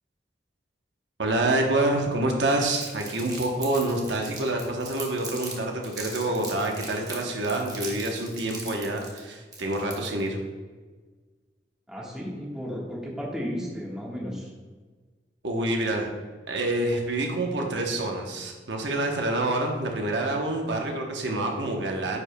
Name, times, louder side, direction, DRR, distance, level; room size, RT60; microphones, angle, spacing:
voice 1, 1.2-10.4 15.4-16.1 16.5-22.2, right 2 dB, 90° right, 2 dB, 0.9 m, -27 dB
Crumpling crinkling, 2.7-5.5 5.8-10.3, right 3 dB, 20° right, 1.1 m, -39 dB
voice 2, 11.9-14.5, equal, 5° right, -5 dB, 1.4 m, -34 dB
9.6 x 4.9 x 2.2 m, 1.4 s
head